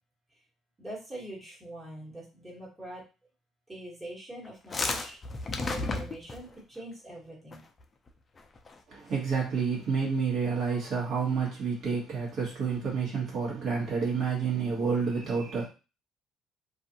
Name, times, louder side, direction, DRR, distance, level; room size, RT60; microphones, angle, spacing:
voice 1, 0.8-3.0 3.7-5.2 5.6-7.6, right 1 dB, 20° right, 1.3 m, -43 dB
sound 1, 4.4-6.5 7.5-7.8 8.1-8.2 8.4-8.8, left 3 dB, 25° left, 0.4 m, -32 dB
voice 2, 8.9-15.7, right 5 dB, 60° right, 1.2 m, -29 dB
2.5 x 2.4 x 2.8 m
cardioid pair, 120°, 0 cm